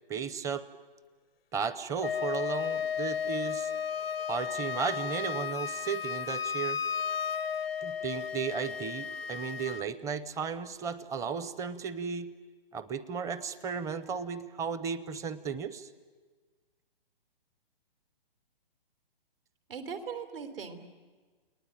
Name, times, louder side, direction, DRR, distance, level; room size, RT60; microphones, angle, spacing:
voice 1, 0.1-0.7 1.5-3.7 4.3-6.8 7.8-12.3 12.7-15.9, right 6 dB, 10° right, 15 dB, 0.7 m, -35 dB
Wind instrument woodwind instrument, 2.0-9.9, left 7 dB, 80° left, 0.7 m, -34 dB
voice 2, 19.7-20.8, right 6 dB, 70° right, 7 dB, 3.5 m, -39 dB
29.5 x 19.5 x 9.1 m, 1.4 s
hypercardioid pair, 140°, 29 cm